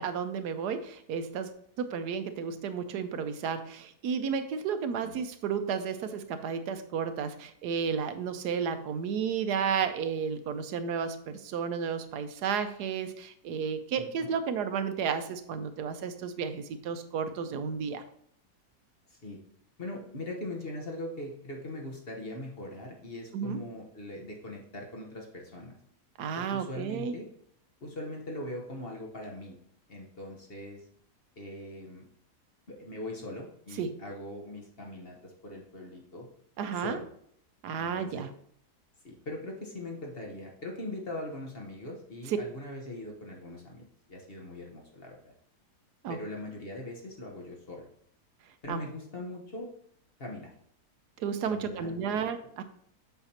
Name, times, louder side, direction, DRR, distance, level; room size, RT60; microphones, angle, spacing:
voice 1, 0.0-1.5 1.8-18.0 23.3-23.6 26.2-27.1 33.8-33.9 36.6-37.0 37.6-38.3 46.0-46.2 48.7-48.8 51.2-52.6, right 6 dB, 80° right, 9 dB, 1.2 m, -32 dB
voice 2, 14.0-14.3 19.1-19.4 19.8-25.8 26.4-27.3 27.8-29.6 29.9-30.8 31.4-32.0 32.7-36.3 36.7-37.1 37.8-38.2 39.0-45.3 46.1-47.9 48.6-49.7 50.2-50.5 51.5-52.2, left 1 dB, 40° left, 0 dB, 1.2 m, -41 dB
7.8 x 5.8 x 2.9 m, 0.66 s
omnidirectional pair, 1.7 m